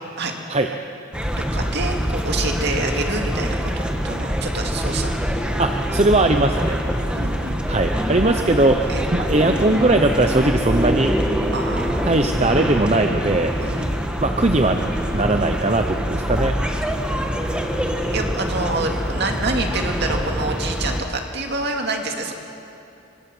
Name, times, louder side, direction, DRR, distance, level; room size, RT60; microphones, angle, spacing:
sound 1, 1.1-21.0, equal, 5° right, 1.4 m, -24 dB
voice 1, 1.5-5.2 6.9-7.6 8.9-9.0 11.5-12.1 13.6-13.9 18.1-22.3, right 2 dB, 50° right, 3 dB, 2.4 m, -27 dB
voice 2, 5.6-6.8 7.7-11.2 12.0-13.5 14.2-14.8 15.1-16.6, right 2 dB, 30° right, 5 dB, 0.8 m, -19 dB
26.0 x 24.5 x 6.2 m, 2.8 s
head